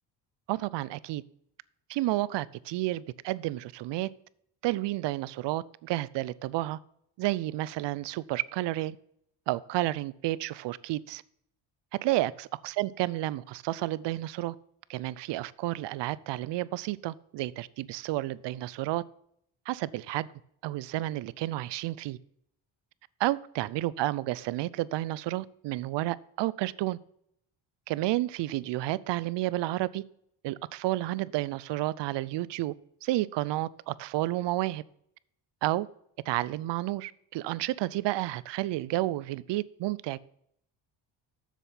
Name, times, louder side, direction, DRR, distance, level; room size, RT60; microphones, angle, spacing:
voice 1, 0.5-1.2 1.9-4.1 4.6-6.8 7.2-9.0 9.5-11.2 11.9-14.6 14.9-19.0 19.7-20.3 20.6-22.2 23.2-27.0 27.9-30.0 30.4-32.7 33.0-34.8 35.6-35.9 36.3-40.2, right 16 dB, 70° right, 0.5 m, -31 dB
7.5 x 6.8 x 5.6 m
cardioid pair, 85°, 44 cm